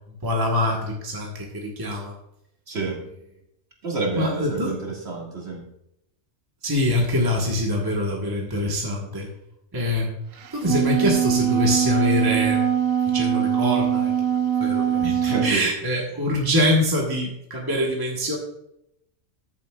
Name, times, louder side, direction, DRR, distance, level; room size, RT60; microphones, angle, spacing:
voice 1, 0.2-2.1 4.2-4.7 6.6-9.3 9.7-10.1 10.5-12.6 13.1-14.1 14.6-18.4, left 1 dB, 20° right, -1 dB, 1.3 m, -24 dB
voice 2, 2.7-3.0 3.8-5.6 15.2-15.7, right 3 dB, 55° right, -2 dB, 2.3 m, -28 dB
Wind instrument woodwind instrument, 10.4-15.6, right 9 dB, 80° right, 1.1 m, -22 dB
13.5 x 7.3 x 2.4 m, 0.80 s
omnidirectional pair, 1.4 m